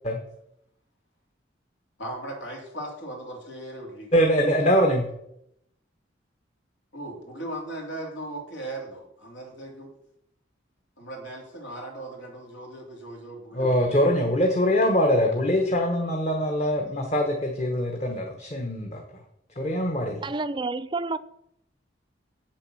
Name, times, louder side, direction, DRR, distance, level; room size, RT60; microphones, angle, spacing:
voice 1, 2.0-4.3 6.9-9.9 11.0-14.0, right 1 dB, 85° left, 3.0 m, -38 dB
voice 2, 4.1-5.1 13.5-19.0 19.6-20.2, equal, 35° left, 1.1 m, -23 dB
voice 3, 20.2-21.2, right 3 dB, 25° right, 0.4 m, -29 dB
8.3 x 7.5 x 6.2 m
head